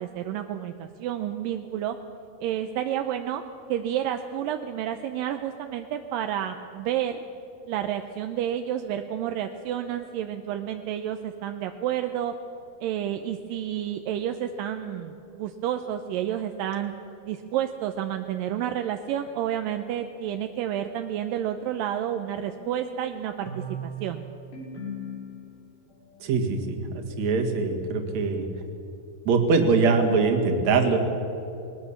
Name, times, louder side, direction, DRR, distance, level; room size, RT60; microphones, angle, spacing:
voice 1, 0.0-2.0 2.4-3.4 3.7-7.2 7.7-12.3 12.8-16.9 17.2-23.5 23.8-24.3, right 10 dB, 80° right, 7 dB, 2.1 m, -30 dB
sound 1, 22.4-26.0, right 1 dB, 45° left, 8.6 m, -39 dB
voice 2, 26.2-28.5 29.3-31.0, right 4 dB, 50° right, 4 dB, 2.7 m, -23 dB
20.5 x 19.5 x 7.2 m, 2.9 s
omnidirectional pair, 4.6 m